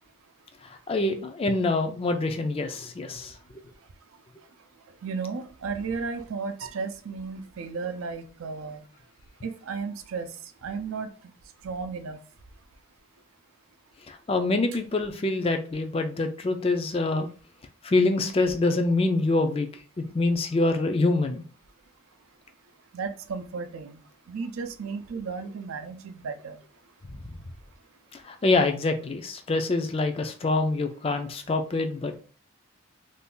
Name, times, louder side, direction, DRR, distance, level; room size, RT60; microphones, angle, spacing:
voice 1, 0.6-3.4 14.1-17.3 17.8-21.4 27.1-27.2 28.1-32.2, left 2 dB, 25° left, 6 dB, 0.3 m, -25 dB
voice 2, 5.0-8.8 9.4-10.3 10.6-11.1 11.6-12.2 22.9-24.0 24.3-26.6, right 5 dB, 80° right, 7 dB, 0.5 m, -34 dB
2.6 x 2.3 x 3.6 m, 0.39 s
head